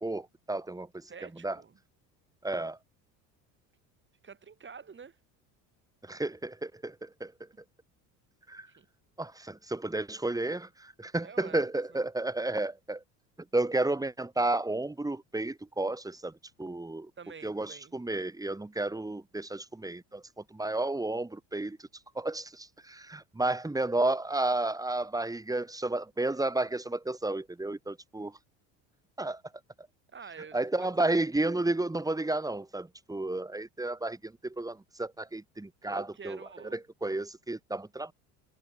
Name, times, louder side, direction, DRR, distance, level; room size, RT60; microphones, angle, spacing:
voice 1, 0.0-1.1 1.4-1.6 2.4-2.8 6.0-7.3 8.5-8.7 9.2-13.0 13.5-16.3 16.6-17.1 17.4-20.2 20.5-21.8 22.2-28.3 29.2-29.4 30.5-36.4 36.7-38.1, right 2 dB, 10° right, 2.0 m, -32 dB
voice 2, 1.1-1.8 4.2-5.2 8.7-8.9 11.2-12.1 17.2-18.0 30.1-30.9 35.8-36.8, right 6 dB, 30° right, 5.1 m, -48 dB
supercardioid pair, 85°, 40 cm